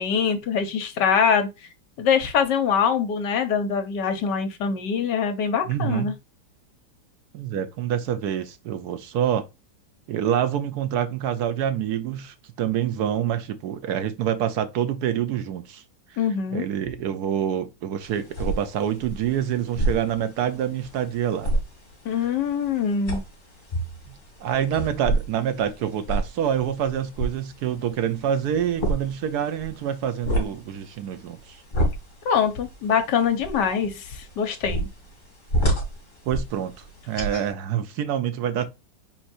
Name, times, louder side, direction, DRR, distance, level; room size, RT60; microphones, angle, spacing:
voice 1, 0.0-1.5 2.0-6.1 16.2-16.6 22.0-23.2 32.2-34.9, left 6 dB, 65° left, 1.5 m, -23 dB
voice 2, 5.7-6.1 7.3-9.4 10.1-15.8 16.5-21.5 24.4-31.6 36.3-36.7 37.1-38.6, right 9 dB, 70° right, 1.1 m, -26 dB
sound 1, 18.0-37.5, right 1 dB, 25° left, 2.2 m, -30 dB
4.5 x 4.4 x 2.5 m
omnidirectional pair, 2.0 m